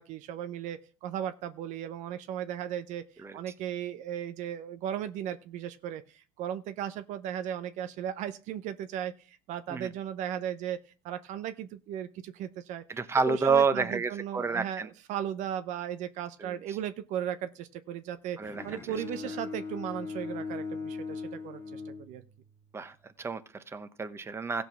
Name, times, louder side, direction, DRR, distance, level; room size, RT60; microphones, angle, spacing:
voice 1, 0.0-10.8 11.0-12.8 13.2-22.2, right 10 dB, 60° right, 10 dB, 0.8 m, -36 dB
voice 2, 12.9-14.9 16.4-16.6 18.4-18.6 22.7-24.6, right 5 dB, 20° right, 10 dB, 1.0 m, -29 dB
Bowed string instrument, 18.4-22.6, left 4 dB, 20° left, 1.6 m, -39 dB
15.0 x 5.2 x 6.1 m, 0.37 s
supercardioid pair, 100°, 14 cm